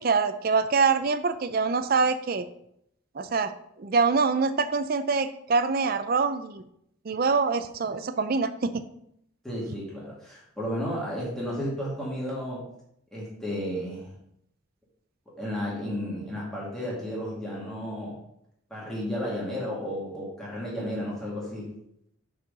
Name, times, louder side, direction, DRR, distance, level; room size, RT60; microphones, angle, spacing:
voice 1, 0.0-2.4 3.1-3.5 3.8-6.6 7.0-8.8, right 4 dB, 45° right, 10 dB, 0.4 m, -25 dB
voice 2, 9.4-12.6 13.1-14.1 15.4-18.2 18.7-21.7, equal, ahead, -6 dB, 2.4 m, -33 dB
6.3 x 4.6 x 5.2 m, 0.74 s
head